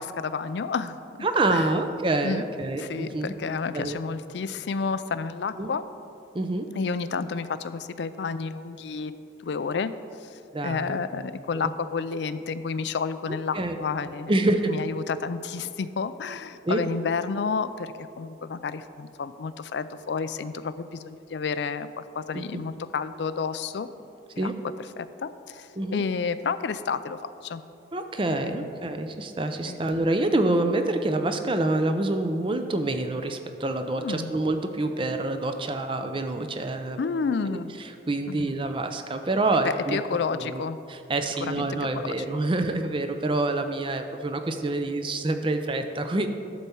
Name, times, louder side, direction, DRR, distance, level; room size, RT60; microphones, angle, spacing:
voice 1, 0.0-1.7 2.2-2.5 2.8-5.8 6.7-9.1 9.4-9.9 10.2-14.3 14.7-23.9 24.4-24.5 25.0-27.6 28.3-28.6 29.7-29.9 34.0-34.3 37.0-37.8 38.3-38.6 39.6-40.8 41.4-41.7 42.0-42.3, left 5 dB, 65° left, 13 dB, 0.4 m, -31 dB
voice 2, 1.2-3.3 3.7-4.0 5.6-5.7 6.3-6.7 10.5-11.0 11.5-11.7 13.3-13.8 14.3-14.7 16.6-16.8 22.3-22.6 24.4-24.6 25.8-26.0 27.9-37.0 37.5-40.0 40.3-40.6 40.9-46.3, right 2 dB, 25° right, 7 dB, 0.5 m, -27 dB
11.5 x 4.3 x 7.0 m, 2.6 s
head